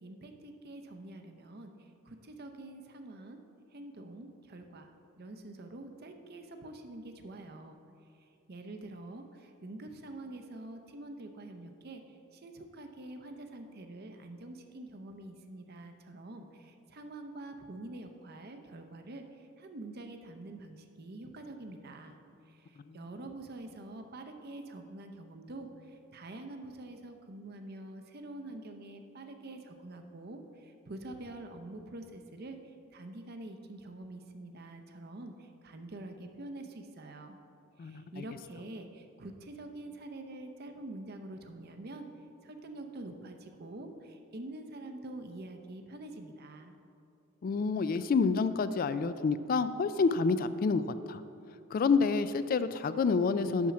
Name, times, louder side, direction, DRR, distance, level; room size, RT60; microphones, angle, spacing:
voice 1, 0.0-3.4 3.7-7.8 8.5-22.2 22.5-37.4 37.8-42.1 42.4-46.7, right 2 dB, 50° right, 6 dB, 0.6 m, -46 dB
voice 2, 37.8-38.2 47.4-51.2 51.7-53.7, left 4 dB, 45° left, 13 dB, 0.3 m, -28 dB
7.2 x 6.1 x 5.8 m, 2.6 s
head